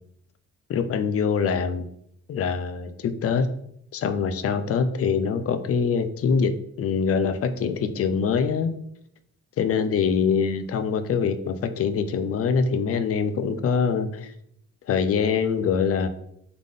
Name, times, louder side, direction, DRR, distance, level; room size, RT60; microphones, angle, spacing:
voice 1, 0.7-1.9 2.3-3.5 3.9-8.7 9.6-14.3 14.9-16.1, left 6 dB, 50° left, 11 dB, 0.5 m, -24 dB
3.8 x 3.5 x 3.5 m, 0.73 s
cardioid pair, 90°, 30 cm